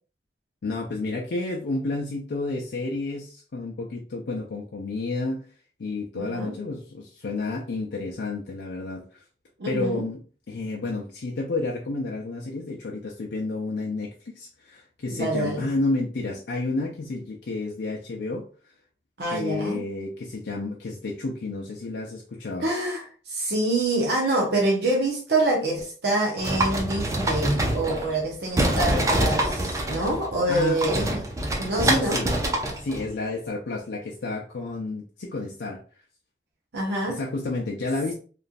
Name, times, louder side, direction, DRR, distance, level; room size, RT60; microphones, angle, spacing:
voice 1, 0.6-5.4 5.8-9.2 9.7-10.2 10.5-18.5 19.3-22.7 30.5-30.8 31.9-32.4 32.8-35.8 37.1-38.1, left 2 dB, 85° left, -2 dB, 0.5 m, -30 dB
voice 2, 6.1-6.5 9.6-10.0 15.1-15.6 19.2-19.8 22.6-31.2 31.6-32.2 36.7-37.2, right 2 dB, 75° right, -2 dB, 0.7 m, -26 dB
sound 1, 26.4-28.3 28.5-33.1, right 1 dB, 20° right, 0.4 m, -25 dB
3.0 x 2.4 x 2.4 m, 0.40 s
head